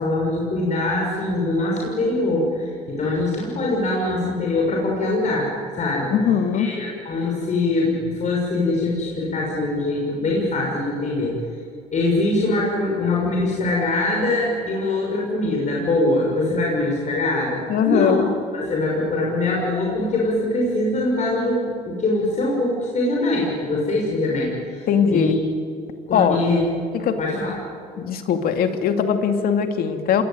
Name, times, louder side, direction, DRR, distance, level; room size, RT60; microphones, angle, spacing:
voice 1, 0.0-6.1 6.5-11.4 11.9-18.2 18.5-25.4 26.1-26.6 27.2-27.5, left 2 dB, 45° left, -3 dB, 6.6 m, -23 dB
voice 2, 6.1-6.7 17.7-18.3 24.9-25.4 26.1-26.4 26.9-27.2 28.0-30.2, left 7 dB, 65° left, 7 dB, 2.5 m, -20 dB
27.5 x 19.5 x 9.3 m, 2.4 s
supercardioid pair, 85°, 17 cm